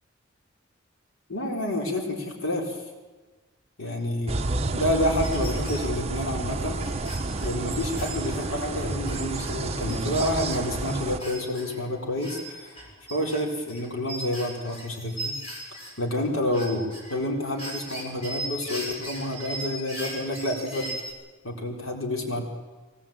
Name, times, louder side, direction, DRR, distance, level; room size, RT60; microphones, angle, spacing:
voice 1, 1.3-2.8 3.8-4.3 4.7-6.8 7.4-12.7 13.1-15.3 16.0-20.9 21.4-22.4, left 1 dB, 80° left, 1 dB, 4.3 m, -29 dB
sound 1, 4.3-11.2, right 2 dB, 30° right, 1.0 m, -30 dB
sound 2, 5.2-5.9 6.2-6.3 6.7-9.5 9.9-11.8 12.2-15.9 16.3-17.2 17.5-21.1, right 1 dB, 30° left, 7.6 m, -38 dB
23.5 x 18.5 x 8.9 m, 1.3 s
head